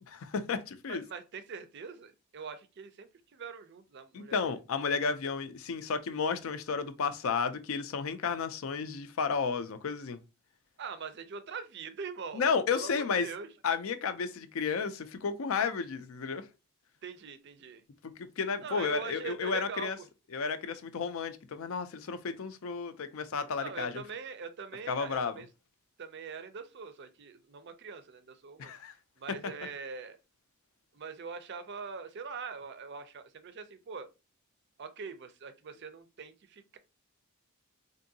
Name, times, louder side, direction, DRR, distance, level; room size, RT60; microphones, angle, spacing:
voice 1, 0.1-1.0 4.1-10.2 12.3-13.3 13.6-16.5 18.0-20.0 20.3-24.0 24.9-25.3 28.6-28.9, left 5 dB, 65° left, 0.4 m, -32 dB
voice 2, 0.9-4.6 10.8-13.5 17.0-17.8 18.6-20.1 23.6-25.5 26.0-28.7 29.2-30.2 30.9-34.1 34.8-36.8, right 5 dB, 50° right, 0.4 m, -43 dB
3.6 x 2.6 x 2.6 m
head